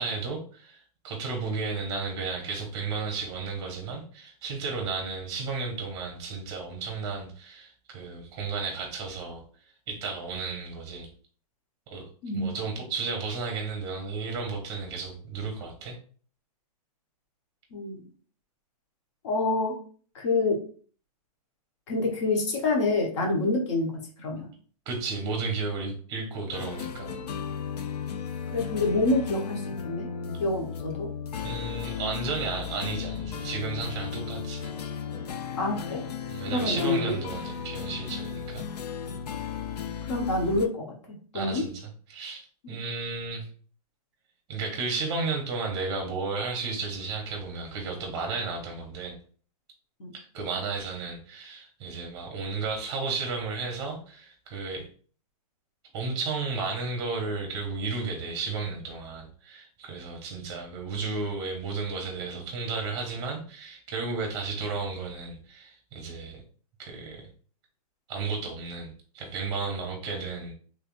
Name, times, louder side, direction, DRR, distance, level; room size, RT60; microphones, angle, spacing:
voice 1, 0.0-9.4 9.9-11.1 11.9-12.1 12.3-16.0 24.9-27.2 31.4-34.7 36.3-38.7 41.3-43.5 44.5-49.2 50.1-54.9 55.9-66.4 66.8-67.3 68.1-70.5, right 4 dB, 20° right, 1 dB, 0.8 m, -33 dB
voice 2, 17.7-18.1 19.2-19.7 20.1-20.6 21.9-23.9 24.2-24.5 28.5-30.1 30.4-31.1 35.6-36.0 36.5-37.2 40.1-40.9 41.3-41.6 42.6-42.7 50.0-50.1, left 2 dB, 45° left, 1 dB, 1.2 m, -27 dB
sound 1, 26.5-40.7, left 7 dB, 80° left, 0.6 m, -35 dB
3.4 x 3.2 x 2.5 m, 0.43 s
hypercardioid pair, 160°, 20 cm